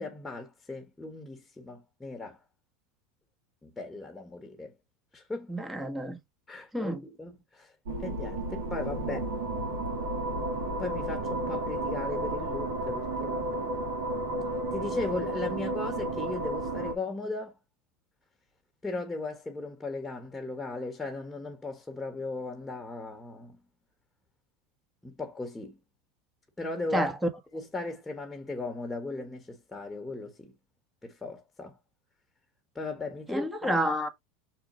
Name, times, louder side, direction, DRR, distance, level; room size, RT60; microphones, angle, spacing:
voice 1, 0.0-2.4 3.6-4.7 5.1-5.5 6.5-7.7 8.0-9.3 10.8-13.7 14.7-17.6 18.8-23.6 25.0-25.8 26.6-27.1 27.5-30.5 31.0-31.8 32.7-33.7, left 3 dB, 10° left, 1.5 m, -37 dB
voice 2, 5.5-6.2 6.7-7.0 26.9-27.1 33.3-34.1, right 1 dB, 10° right, 1.4 m, -29 dB
sound 1, 7.9-16.9, right 1 dB, 85° right, 2.9 m, -32 dB
6.5 x 4.5 x 4.1 m
supercardioid pair, 115°, 0 cm